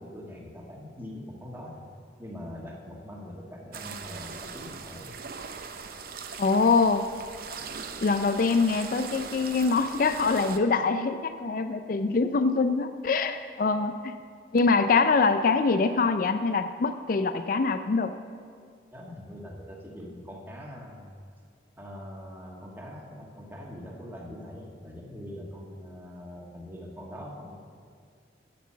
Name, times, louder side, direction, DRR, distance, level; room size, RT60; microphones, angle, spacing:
voice 1, 0.0-1.8 2.2-5.1 18.9-21.2 21.8-27.6, left 1 dB, 10° right, -2 dB, 1.4 m, -42 dB
sound 1, 3.7-10.6, right 5 dB, 55° right, 0.7 m, -40 dB
voice 2, 6.4-7.1 8.0-14.2 14.5-18.1, left 4 dB, 50° left, 9 dB, 0.4 m, -24 dB
8.5 x 8.2 x 7.4 m, 2.1 s
head